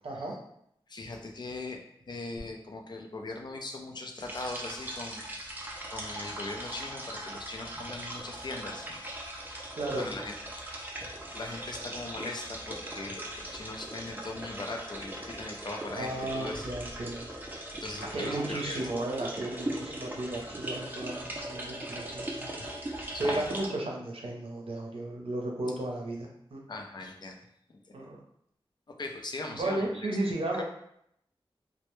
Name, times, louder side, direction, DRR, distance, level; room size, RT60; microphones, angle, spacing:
voice 1, 0.0-0.3 9.8-10.1 16.0-17.3 18.1-22.5 23.0-26.6 27.9-28.2 29.5-30.6, right 1 dB, 75° right, -1 dB, 0.6 m, -34 dB
voice 2, 0.9-1.8 2.1-9.0 9.9-10.3 11.0-16.6 17.8-18.8 23.2-23.5 26.7-27.4 27.7-28.0 29.0-29.9 30.6-30.7, left 2 dB, 50° left, 2 dB, 0.4 m, -40 dB
sound 1, 4.2-23.7, right 1 dB, 20° right, 0.4 m, -39 dB
2.1 x 2.1 x 2.9 m, 0.73 s
wide cardioid pair, 80°, 10 cm